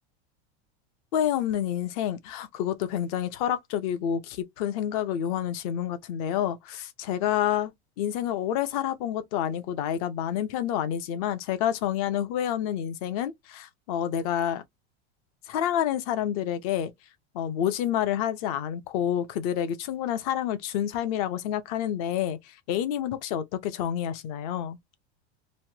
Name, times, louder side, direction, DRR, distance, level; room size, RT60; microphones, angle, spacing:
voice 1, 1.1-7.7 8.0-14.6 15.5-16.9 17.3-24.8, left 10 dB, 35° left, 0.4 m, -28 dB
3.1 x 2.1 x 2.6 m
supercardioid pair, 175°, 32 cm